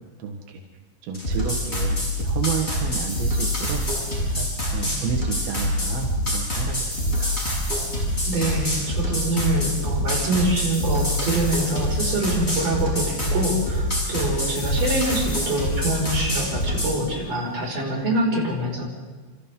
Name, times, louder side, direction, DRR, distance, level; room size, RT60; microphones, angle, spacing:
voice 1, 0.2-0.6 1.0-3.9 4.2-7.4, right 7 dB, 85° right, 2 dB, 3.4 m, -31 dB
sound 1, 1.1-17.0, left 1 dB, 15° left, 6.7 m, -25 dB
voice 2, 8.3-18.9, right 1 dB, 45° right, -2 dB, 6.7 m, -25 dB
28.0 x 28.0 x 3.8 m, 1.3 s
omnidirectional pair, 4.1 m